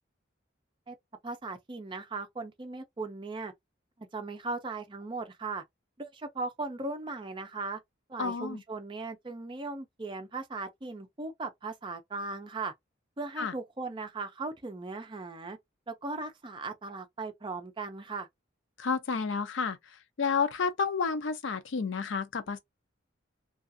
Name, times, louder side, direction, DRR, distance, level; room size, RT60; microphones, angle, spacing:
voice 1, 1.2-3.5 4.0-5.6 6.0-7.8 8.1-12.7 13.2-15.6 15.9-18.3, right 3 dB, 25° right, 0.5 m, -38 dB
voice 2, 8.2-8.6 13.4-13.5 18.8-19.8 20.2-22.6, left 5 dB, 75° left, 0.5 m, -30 dB
2.4 x 2.3 x 2.5 m
head